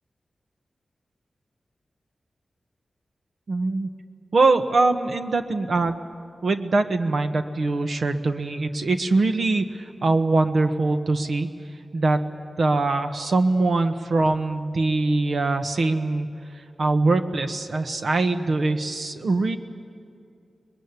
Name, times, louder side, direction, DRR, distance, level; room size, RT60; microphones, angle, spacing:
voice 1, 3.5-3.9 4.3-5.9 6.4-11.5 11.9-12.3 12.6-16.3 16.8-19.6, right 3 dB, 70° right, 7 dB, 1.4 m, -22 dB
24.5 x 20.5 x 9.8 m, 2.5 s
cardioid pair, 70°, 0 cm